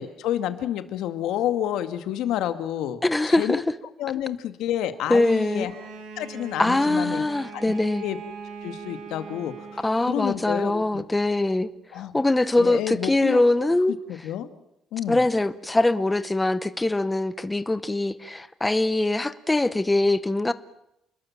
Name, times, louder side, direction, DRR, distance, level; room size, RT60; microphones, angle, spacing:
voice 1, 0.0-3.6 4.0-5.7 6.2-7.2 7.5-7.7 8.0-8.2 8.6-11.0 11.9-12.1 12.6-13.4 14.1-14.5 14.9-15.2, left 11 dB, 75° left, 2.0 m, -29 dB
voice 2, 3.0-3.6 5.1-5.7 6.6-8.0 9.8-11.7 11.9-13.9 15.1-20.5, left 2 dB, 10° left, 0.8 m, -22 dB
Bowed string instrument, 5.4-10.6, right 5 dB, 90° right, 5.0 m, -41 dB
29.0 x 20.5 x 7.4 m
cardioid pair, 165°, 0 cm